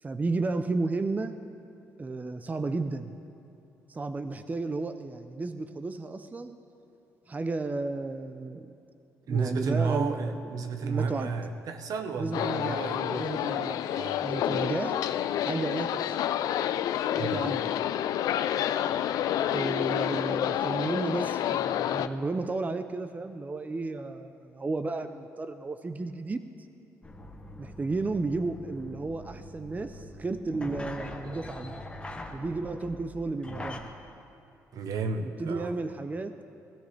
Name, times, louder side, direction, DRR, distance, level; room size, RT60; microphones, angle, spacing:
voice 1, 0.0-1.5 2.0-3.1 3.9-6.6 7.3-8.7 9.3-11.3 12.2-12.9 13.2-15.1 15.4-16.1 17.2-17.9 19.5-26.5 27.6-31.8 32.3-33.9 35.2-36.4, right 3 dB, 25° right, 10 dB, 0.6 m, -33 dB
voice 2, 9.3-13.3 13.9-14.3 17.1-17.4 34.7-35.8, right 5 dB, 65° right, 7 dB, 1.1 m, -32 dB
sound 1, 12.3-22.1, left 11 dB, 70° left, 0.4 m, -29 dB
sound 2, 27.0-33.8, left 1 dB, 15° left, 1.4 m, -42 dB
16.5 x 15.5 x 3.3 m, 2.8 s
supercardioid pair, 75°, 7 cm